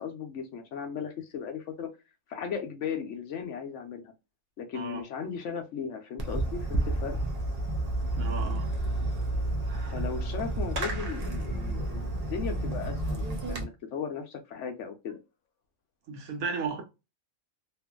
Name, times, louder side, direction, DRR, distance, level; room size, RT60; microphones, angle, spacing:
voice 1, 0.0-1.9 2.3-4.1 4.6-7.2 9.8-15.2, left 6 dB, 65° left, 0.9 m, -37 dB
Fireworks, 6.2-13.6, right 2 dB, 45° right, 0.5 m, -30 dB
voice 2, 8.2-8.7 16.1-16.8, right 5 dB, 80° right, 1.3 m, -34 dB
2.9 x 2.5 x 2.2 m
omnidirectional pair, 1.5 m